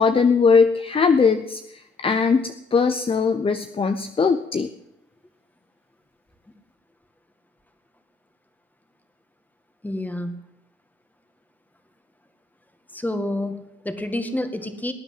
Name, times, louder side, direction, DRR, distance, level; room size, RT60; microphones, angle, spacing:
voice 1, 0.0-4.7, left 5 dB, 25° left, 9 dB, 0.8 m, -20 dB
voice 2, 9.8-10.4 12.9-14.9, left 1 dB, 10° left, 7 dB, 2.0 m, -28 dB
19.0 x 9.1 x 7.9 m, 0.88 s
cardioid pair, 90°, 20 cm